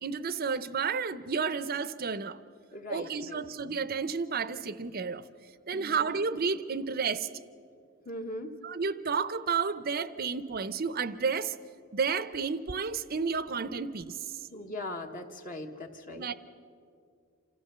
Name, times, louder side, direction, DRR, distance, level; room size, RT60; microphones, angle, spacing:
voice 1, 0.0-2.4 2.9-5.3 5.7-7.3 8.6-11.5 11.9-14.2 16.2-16.3, right 5 dB, 45° right, 15 dB, 0.6 m, -31 dB
voice 2, 2.7-3.4 5.7-5.9 8.0-8.5 14.5-16.3, left 1 dB, 40° left, 4 dB, 1.2 m, -40 dB
27.0 x 14.0 x 6.7 m, 2.3 s
head